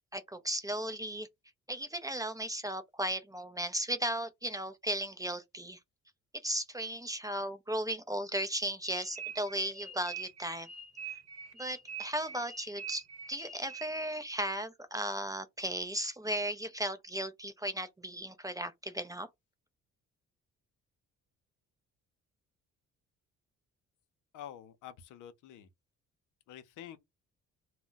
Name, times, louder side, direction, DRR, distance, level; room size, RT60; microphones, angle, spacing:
voice 1, 0.1-1.3 1.7-5.8 6.4-10.7 11.1-11.2 11.6-19.3, right 1 dB, 10° right, 0.4 m, -36 dB
sound 1, 8.8-14.1, right 6 dB, 55° right, 0.8 m, -45 dB
voice 2, 24.3-25.7 26.5-27.0, left 10 dB, 80° left, 0.6 m, -48 dB
2.2 x 2.1 x 3.8 m
cardioid pair, 90°, 30 cm